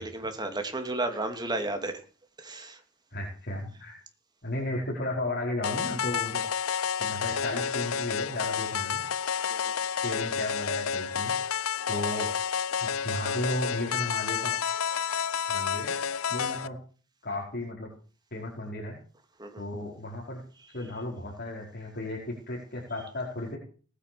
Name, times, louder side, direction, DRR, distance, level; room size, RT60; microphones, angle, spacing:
voice 1, 0.0-2.0 2.4-2.8 9.5-9.6 19.4-19.6, right 2 dB, 20° right, 6 dB, 2.9 m, -33 dB
voice 2, 3.1-4.0 4.4-6.4 7.0-9.0 10.0-11.3 11.9-12.3 12.8-14.5 15.5-16.0 16.3-16.8 17.2-17.9 18.3-19.0 19.6-20.4 20.7-23.6, left 1 dB, 50° left, -3 dB, 4.8 m, -34 dB
sound 1, 5.6-16.7, left 7 dB, 85° left, 0.7 m, -30 dB
19.0 x 9.9 x 7.0 m, 0.40 s
head